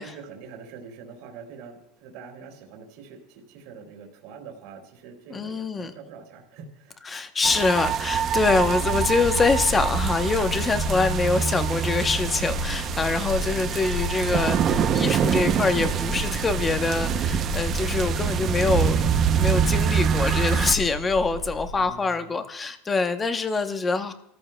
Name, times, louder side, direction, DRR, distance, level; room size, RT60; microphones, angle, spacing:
voice 1, 0.0-7.0 13.4-13.9 21.8-22.4, right 6 dB, 60° right, 1 dB, 2.5 m, -44 dB
voice 2, 5.3-5.9 7.0-19.1 19.4-24.1, left 4 dB, 15° left, 9 dB, 0.8 m, -24 dB
sound 1, 7.4-20.8, right 8 dB, 30° right, 0.6 m, -25 dB
sound 2, 8.4-21.9, left 4 dB, 70° left, 3.2 m, -34 dB
29.5 x 14.0 x 2.2 m, 0.79 s
supercardioid pair, 160°, 0 cm